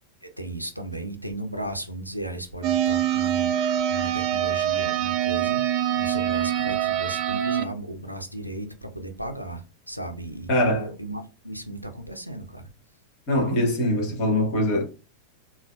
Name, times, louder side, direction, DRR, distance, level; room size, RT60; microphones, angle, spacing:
voice 1, 0.2-5.6 5.9-12.7, right 1 dB, 90° right, 0.5 m, -35 dB
sound 1, 2.6-7.6, right 10 dB, 35° right, 0.4 m, -24 dB
voice 2, 10.5-10.9 13.3-14.8, left 1 dB, 40° left, 1.2 m, -22 dB
3.9 x 2.1 x 2.2 m
figure-of-eight pair, 90°, 0 cm